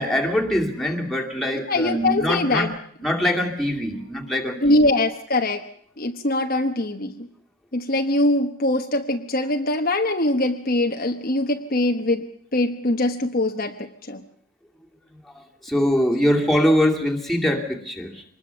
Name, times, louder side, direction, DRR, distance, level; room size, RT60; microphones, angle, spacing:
voice 1, 0.0-2.7 3.0-4.7 15.1-15.2 15.6-18.2, equal, ahead, 0 dB, 2.4 m, -23 dB
voice 2, 1.7-2.8 4.6-5.6 6.0-7.3 7.7-14.2, left 1 dB, 40° left, 4 dB, 1.1 m, -22 dB
24.5 x 20.5 x 7.0 m, 0.63 s
head